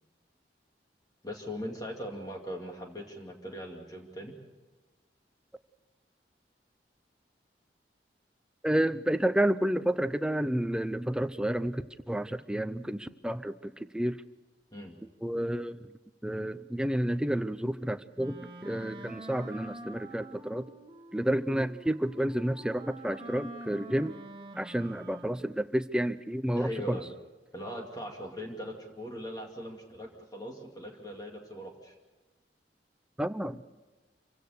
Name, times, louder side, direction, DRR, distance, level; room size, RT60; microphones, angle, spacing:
voice 1, 1.2-4.4 14.7-15.0 26.5-27.1 27.5-31.9, equal, 20° left, 1 dB, 2.4 m, -40 dB
voice 2, 8.6-14.2 15.2-15.9 16.2-20.6 21.1-24.1 24.6-27.0 33.2-33.6, right 1 dB, 5° right, 11 dB, 0.6 m, -30 dB
Wind instrument woodwind instrument, 18.2-25.6, right 1 dB, 30° right, 1.7 m, -47 dB
26.5 x 16.5 x 6.6 m, 1.2 s
head